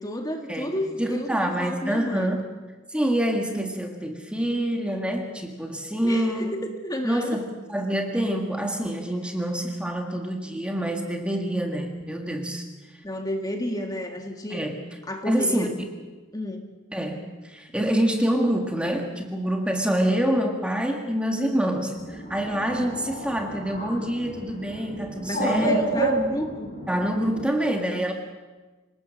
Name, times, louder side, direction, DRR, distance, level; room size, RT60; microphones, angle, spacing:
voice 1, 0.0-2.3 6.0-7.4 13.0-14.6 15.0-15.8 16.3-16.7 25.3-26.7, left 1 dB, 20° left, 4 dB, 1.7 m, -30 dB
voice 2, 1.0-2.5 2.9-6.6 7.0-12.6 14.5-14.8 15.3-15.9 16.9-25.9 26.9-28.1, right 1 dB, 5° right, 3 dB, 1.8 m, -26 dB
Bird, 22.0-27.5, right 1 dB, 35° left, 7.8 m, -30 dB
27.5 x 18.5 x 6.4 m, 1.2 s
head